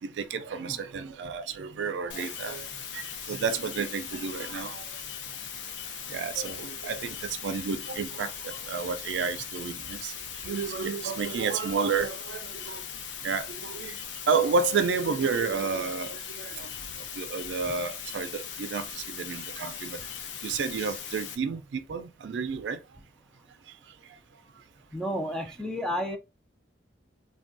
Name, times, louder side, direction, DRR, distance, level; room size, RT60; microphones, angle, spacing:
voice 1, 0.0-5.0 6.1-12.8 13.2-14.0 14.3-16.7 17.1-20.0 20.4-22.8 25.5-25.6, right 5 dB, 75° right, 0.4 m, -31 dB
sound 1, 2.1-21.3, left 7 dB, 90° left, 0.5 m, -39 dB
voice 2, 24.9-26.2, equal, 5° left, 0.3 m, -31 dB
3.3 x 2.2 x 2.5 m
head